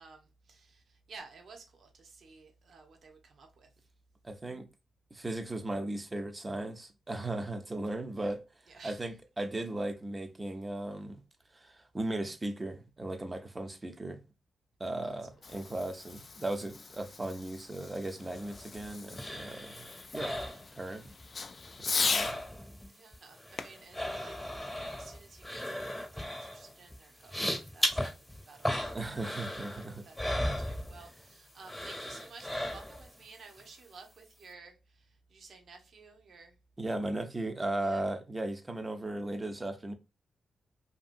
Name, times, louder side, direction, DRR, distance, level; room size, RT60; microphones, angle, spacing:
voice 1, 0.0-3.7 8.2-8.4 8.7-9.1 15.0-15.5 22.9-29.2 29.7-36.6 37.8-38.1, right 4 dB, 65° right, 0.8 m, -54 dB
voice 2, 4.2-4.7 5.1-8.4 8.8-11.2 11.5-14.2 14.8-19.9 20.1-20.3 20.7-21.1 21.8-22.3 28.9-30.1 36.8-39.9, right 2 dB, 25° right, 0.7 m, -37 dB
Fireworks, 15.1-22.4 23.6-25.2, left 4 dB, 50° left, 0.3 m, -38 dB
sound 1, 18.2-21.2 21.5-22.9 23.1-31.3 31.6-33.2 33.6-33.7, left 1 dB, 10° left, 1.1 m, -37 dB
2.7 x 2.7 x 2.5 m
cardioid pair, 55°, 0 cm